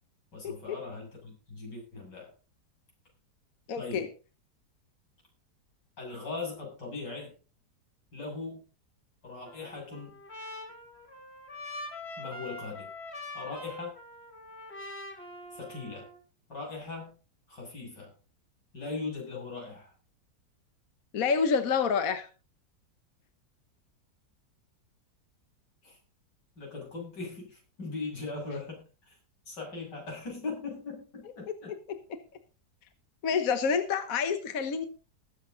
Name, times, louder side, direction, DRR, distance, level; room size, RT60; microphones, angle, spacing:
voice 1, 0.3-2.3 3.8-4.1 6.0-7.4 8.1-8.7 9.2-10.2 12.2-12.9 13.3-14.0 15.5-16.1 16.5-17.2 17.5-18.1 18.7-19.9 25.8-26.0 26.6-29.2 29.5-31.8, left 3 dB, 85° left, -1 dB, 7.8 m, -39 dB
voice 2, 3.7-4.1 21.1-22.3 31.9-32.0 33.2-34.9, left 6 dB, 55° left, 9 dB, 1.4 m, -27 dB
Trumpet, 9.4-16.2, left 1 dB, 40° left, 2.5 m, -44 dB
20.0 x 8.0 x 4.0 m, 0.35 s
omnidirectional pair, 1.8 m